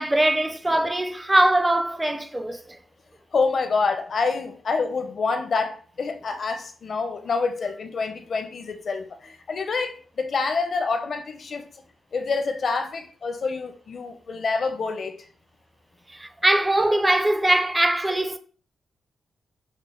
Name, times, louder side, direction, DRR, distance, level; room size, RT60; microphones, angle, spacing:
voice 1, 0.0-2.8 16.1-18.4, right 1 dB, 10° right, 0.4 m, -22 dB
voice 2, 3.3-11.7 12.1-15.2, left 4 dB, 50° left, 0.6 m, -27 dB
6.2 x 2.1 x 3.8 m
wide cardioid pair, 145°, 0 cm